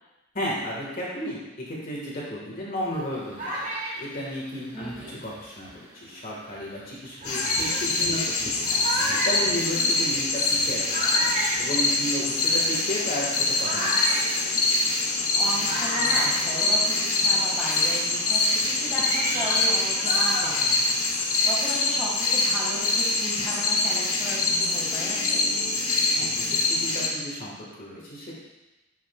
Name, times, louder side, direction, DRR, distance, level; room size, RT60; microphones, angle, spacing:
voice 1, 0.3-3.7 4.0-8.7 9.0-10.8 11.2-11.3 11.6-14.2 26.2-28.3, equal, 40° left, -5 dB, 1.7 m, -33 dB
sound 1, 2.9-5.9 6.6-6.7 7.2-17.2 17.5-21.3, right 1 dB, 35° right, 1.5 m, -33 dB
voice 2, 4.7-5.1 15.3-25.4, equal, 5° right, -7 dB, 1.8 m, -35 dB
sound 2, 7.2-27.1, left 3 dB, 80° left, 1.1 m, -24 dB
9.9 x 5.9 x 2.4 m, 1.0 s
head